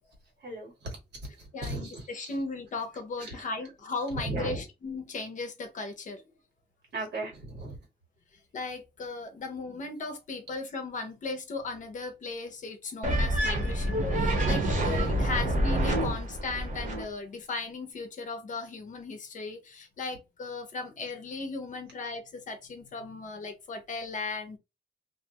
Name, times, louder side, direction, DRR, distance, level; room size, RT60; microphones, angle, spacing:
voice 1, 0.4-2.4 3.2-3.5 4.1-4.6 6.9-7.8 14.0-14.2, right 2 dB, 85° right, 1.4 m, -37 dB
voice 2, 1.5-6.2 8.5-24.6, left 3 dB, 45° left, 0.6 m, -37 dB
sound 1, 13.0-17.0, right 1 dB, 50° right, 0.9 m, -27 dB
2.5 x 2.1 x 2.8 m
wide cardioid pair, 170°, 17 cm